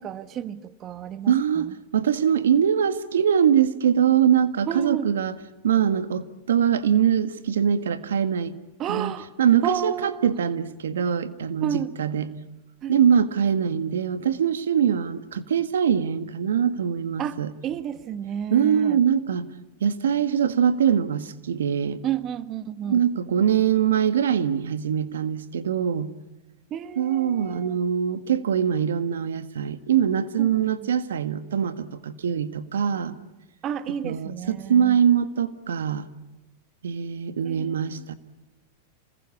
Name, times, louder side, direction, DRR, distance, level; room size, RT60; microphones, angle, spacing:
voice 1, 0.0-1.7 4.7-5.1 8.8-9.3 9.6-10.3 11.6-11.9 12.8-13.0 17.2-19.0 22.0-23.0 26.7-27.7 30.4-30.9 33.6-35.0 37.4-38.0, right 10 dB, 35° right, 1.4 m, -32 dB
voice 2, 1.3-5.4 5.6-8.5 8.9-12.3 12.9-17.5 18.5-19.5 19.8-22.0 22.8-26.1 27.0-33.2 34.0-36.1 36.8-38.1, right 8 dB, 90° right, 1.6 m, -23 dB
27.0 x 20.5 x 8.5 m
hypercardioid pair, 120°, 0 cm